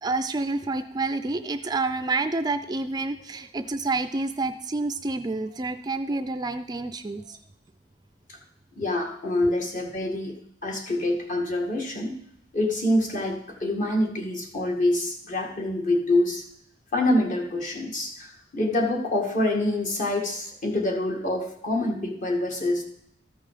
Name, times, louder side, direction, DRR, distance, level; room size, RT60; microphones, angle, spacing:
voice 1, 0.0-7.4, right 3 dB, 20° right, 10 dB, 0.3 m, -28 dB
voice 2, 8.8-10.4 10.6-12.1 12.5-16.4 16.9-22.8, left 1 dB, 45° left, 0 dB, 1.9 m, -26 dB
13.5 x 5.5 x 4.9 m, 0.75 s
head